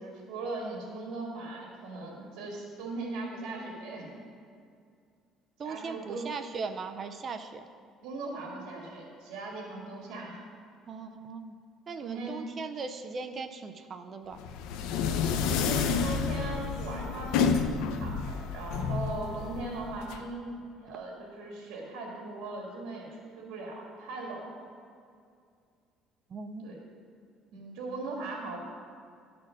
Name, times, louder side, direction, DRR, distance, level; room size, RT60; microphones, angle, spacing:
voice 1, 0.0-4.2 5.6-6.3 8.0-10.4 12.0-12.4 12.7-12.9 15.3-24.7 26.6-26.9 27.5-28.6, right 2 dB, 85° right, -2 dB, 1.9 m, -39 dB
voice 2, 5.6-7.7 10.9-11.5 11.9-14.4 26.3-26.8, right 4 dB, 30° right, 7 dB, 0.4 m, -39 dB
sound 1, 14.4-20.2, left 6 dB, 85° left, 0.5 m, -30 dB
11.5 x 4.3 x 6.3 m, 2.3 s
cardioid pair, 160°, 0 cm